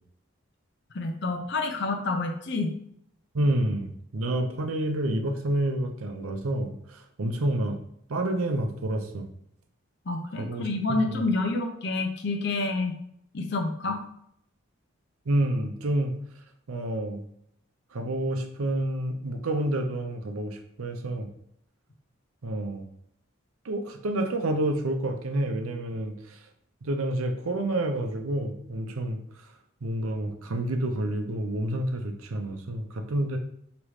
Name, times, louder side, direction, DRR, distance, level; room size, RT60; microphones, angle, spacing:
voice 1, 0.9-2.7 10.1-12.9 13.3-14.0, left 3 dB, 55° left, 4 dB, 0.6 m, -28 dB
voice 2, 3.3-7.8 8.1-9.3 10.4-10.7 11.1-11.2 15.3-16.1 16.7-17.2 17.9-21.3 22.4-22.9 23.6-26.4 26.8-29.2 29.8-33.4, right 1 dB, 85° right, 5 dB, 0.6 m, -29 dB
5.0 x 3.0 x 3.2 m, 0.71 s
head